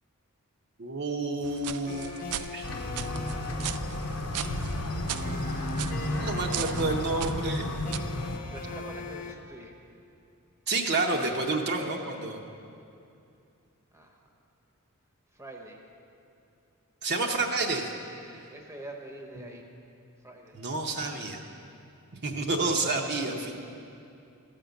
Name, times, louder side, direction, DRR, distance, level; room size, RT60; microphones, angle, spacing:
voice 1, 0.8-2.2 2.5-2.7 6.2-7.6 10.7-12.5 17.0-17.8 19.4-19.5 20.5-21.4 22.2-23.5, right 3 dB, 50° right, 2 dB, 0.7 m, -29 dB
sound 1, 1.4-8.0, right 11 dB, 85° right, 0.3 m, -39 dB
sound 2, 1.8-9.3, left 3 dB, 40° left, 0.7 m, -40 dB
sound 3, 2.6-8.4, left 1 dB, 90° left, 0.8 m, -33 dB
voice 2, 8.2-9.8 13.9-14.3 15.3-15.9 18.2-19.7 20.2-20.6, right 1 dB, 10° right, 2 dB, 0.9 m, -45 dB
13.5 x 5.2 x 7.0 m, 2.6 s
head